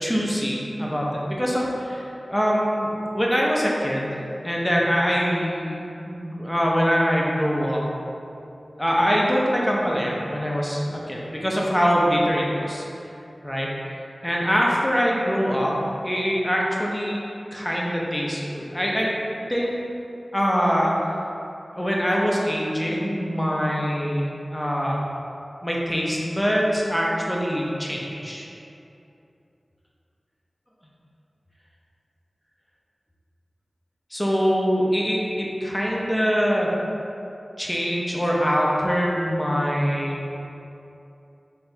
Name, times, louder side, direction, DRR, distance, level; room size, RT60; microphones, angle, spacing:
voice 1, 0.0-4.2 4.4-7.8 8.8-12.8 13.4-13.7 14.2-15.7 16.0-17.2 17.5-19.1 19.5-19.8 20.3-21.1 21.8-24.3 24.5-25.0 25.6-28.5 34.1-36.7 37.6-40.2, equal, 10° left, -3 dB, 0.6 m, -23 dB
4.5 x 3.3 x 2.6 m, 2.8 s
wide cardioid pair, 70°, 0 cm